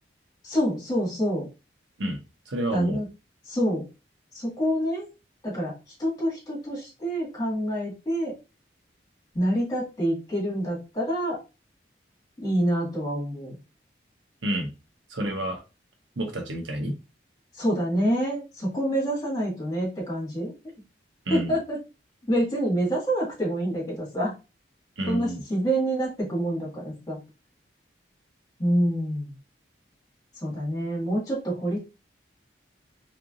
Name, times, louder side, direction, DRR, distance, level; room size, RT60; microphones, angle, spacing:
voice 1, 0.4-1.5 2.7-3.1 3.5-3.9 4.3-5.1 5.4-8.3 9.3-11.4 12.4-13.5 17.5-20.5 21.3-21.8 22.3-24.3 25.1-27.2 28.6-29.3 30.4-31.8, equal, 20° left, -5 dB, 2.0 m, -27 dB
voice 2, 2.5-3.0 14.4-14.7 15.1-15.6 16.2-16.9 21.3-21.5 25.0-25.4, right 1 dB, 85° right, 4 dB, 0.9 m, -29 dB
3.9 x 3.3 x 2.5 m, 0.28 s
head